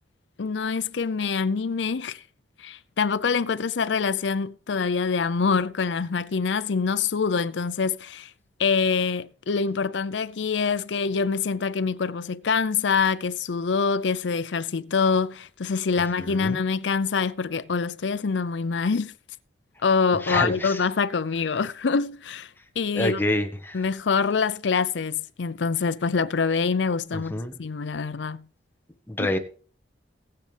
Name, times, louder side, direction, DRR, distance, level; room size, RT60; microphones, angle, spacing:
voice 1, 0.4-2.2 2.6-8.3 8.6-19.1 19.8-22.5 22.8-23.2 23.7-28.5 29.2-29.3, left 5 dB, 85° left, 0.5 m, -25 dB
voice 2, 16.0-16.6 20.2-20.8 22.9-23.8 27.1-27.5 29.1-29.4, left 1 dB, 10° left, 1.3 m, -27 dB
19.5 x 7.7 x 3.4 m
head